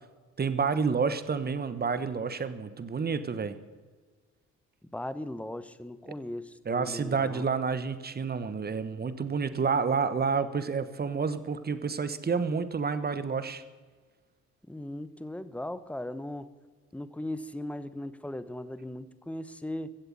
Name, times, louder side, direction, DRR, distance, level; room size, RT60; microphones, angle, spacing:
voice 1, 0.4-3.5 6.6-13.6, right 5 dB, 30° right, 13 dB, 1.2 m, -29 dB
voice 2, 4.9-7.4 14.7-16.5 16.9-19.9, left 1 dB, 5° left, 14 dB, 0.9 m, -38 dB
16.0 x 8.0 x 9.4 m, 1.5 s
cardioid pair, 90°, 30 cm